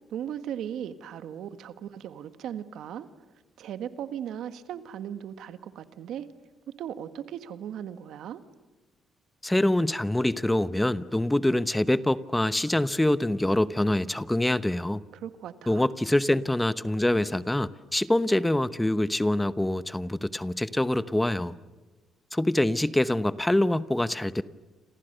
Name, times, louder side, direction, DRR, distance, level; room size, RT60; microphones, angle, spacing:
voice 1, 0.1-3.1 3.6-6.3 6.8-8.4 15.1-15.9, right 9 dB, 80° right, 11 dB, 1.6 m, -37 dB
voice 2, 9.4-15.0 15.7-21.6 22.3-24.4, left 1 dB, 10° left, 15 dB, 0.9 m, -25 dB
29.5 x 27.0 x 6.8 m, 1.2 s
cardioid pair, 90°, 0 cm